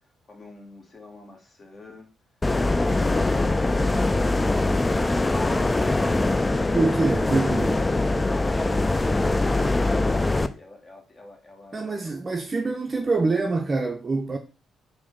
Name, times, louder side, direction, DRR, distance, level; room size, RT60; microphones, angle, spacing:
voice 1, 0.0-2.1 8.3-12.2, left 2 dB, 40° left, 1.2 m, -46 dB
sound 1, 2.4-10.5, left 2 dB, 20° left, 0.3 m, -22 dB
voice 2, 6.7-7.8 11.7-14.4, right 3 dB, 35° right, 0.5 m, -25 dB
4.6 x 2.0 x 3.7 m
hypercardioid pair, 45°, 0 cm